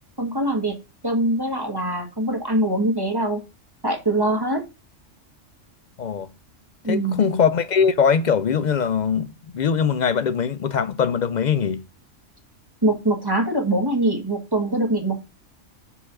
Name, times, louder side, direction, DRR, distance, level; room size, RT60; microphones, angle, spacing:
voice 1, 0.2-0.8 1.0-3.4 3.8-4.6 6.8-7.3 12.8-15.2, right 1 dB, 20° right, 1.8 m, -23 dB
voice 2, 6.0-6.3 6.9-11.8, left 6 dB, 60° left, 0.4 m, -21 dB
6.9 x 4.9 x 5.9 m
omnidirectional pair, 1.3 m